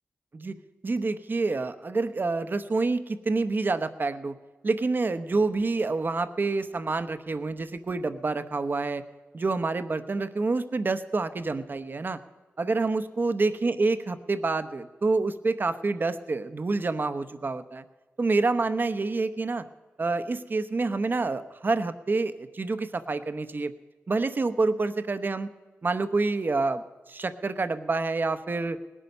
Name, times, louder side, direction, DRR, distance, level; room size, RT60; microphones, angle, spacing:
voice 1, 0.8-4.3 4.6-9.0 9.3-12.2 12.6-17.8 18.2-19.7 20.0-23.7 24.1-25.5 25.8-28.8, right 3 dB, 45° right, 11 dB, 0.8 m, -27 dB
19.0 x 11.0 x 5.4 m, 1.2 s
wide cardioid pair, 75°, 5 cm